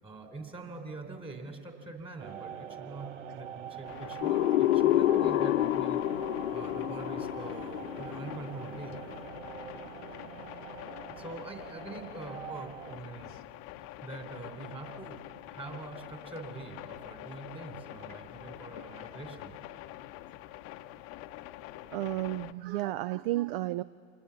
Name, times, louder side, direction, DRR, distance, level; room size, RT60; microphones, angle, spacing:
voice 1, 0.0-6.0 6.5-9.0 11.1-13.3 13.8-19.5, right 3 dB, 15° right, 4 dB, 3.4 m, -44 dB
sound 1, 2.2-13.0, right 9 dB, 85° right, 0.8 m, -44 dB
sound 2, 3.8-22.5, left 15 dB, 40° left, 0.8 m, -46 dB
sound 3, 4.2-8.9, left 14 dB, 80° left, 0.5 m, -28 dB
voice 2, 21.9-23.8, right 16 dB, 50° right, 17 dB, 0.5 m, -32 dB
27.5 x 20.0 x 7.0 m, 2.6 s
hypercardioid pair, 115°, 37 cm